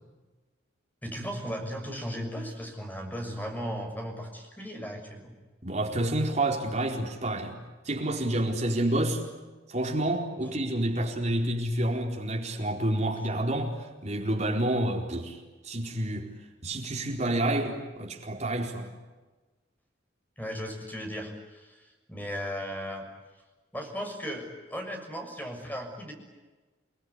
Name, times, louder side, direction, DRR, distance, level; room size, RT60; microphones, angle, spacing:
voice 1, 1.0-5.3 20.4-23.1 23.7-26.1, equal, 10° left, 6.7 m, -36 dB
voice 2, 5.6-7.6 7.8-9.2 9.7-16.3 16.6-18.9, right 1 dB, 40° right, 4.4 m, -29 dB
29.0 x 20.5 x 9.8 m
head